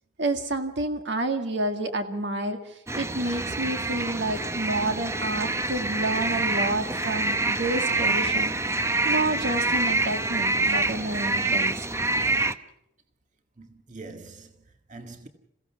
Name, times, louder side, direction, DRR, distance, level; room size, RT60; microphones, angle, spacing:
voice 1, 0.2-8.5 9.0-11.9, right 2 dB, 65° right, 2.0 m, -29 dB
sound 1, 2.9-12.5, right 2 dB, 15° right, 0.7 m, -26 dB
voice 2, 13.6-15.3, right 3 dB, 40° right, 1.9 m, -44 dB
29.0 x 16.5 x 5.8 m
head